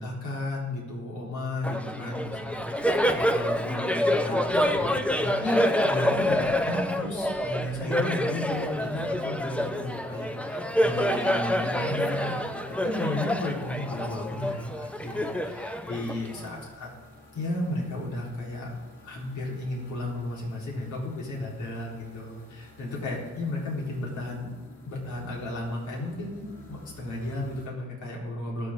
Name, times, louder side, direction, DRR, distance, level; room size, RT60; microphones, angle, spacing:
voice 1, 0.0-4.9 5.2-16.9 17.3-18.7 19.0-24.5 24.8-28.7, left 1 dB, 70° left, -3 dB, 4.1 m, -34 dB
Laughter, 1.6-16.6, equal, 5° left, 0.8 m, -27 dB
sound 1, 8.4-27.7, left 2 dB, 35° left, 4.6 m, -52 dB
23.0 x 7.7 x 3.8 m, 1.3 s
cardioid pair, 90°, 30 cm